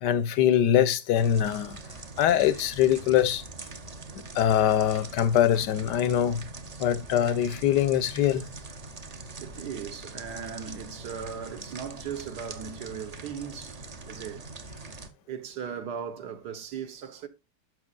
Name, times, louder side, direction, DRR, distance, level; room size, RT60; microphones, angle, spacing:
voice 1, 0.0-1.8 2.2-3.4 4.3-6.5 6.8-8.5, left 10 dB, 85° left, 1.4 m, -23 dB
sound 1, 1.1-15.1, right 3 dB, 40° right, 0.6 m, -43 dB
voice 2, 9.4-14.5 15.3-17.3, right 7 dB, 75° right, 1.5 m, -38 dB
11.0 x 6.4 x 2.4 m
omnidirectional pair, 1.8 m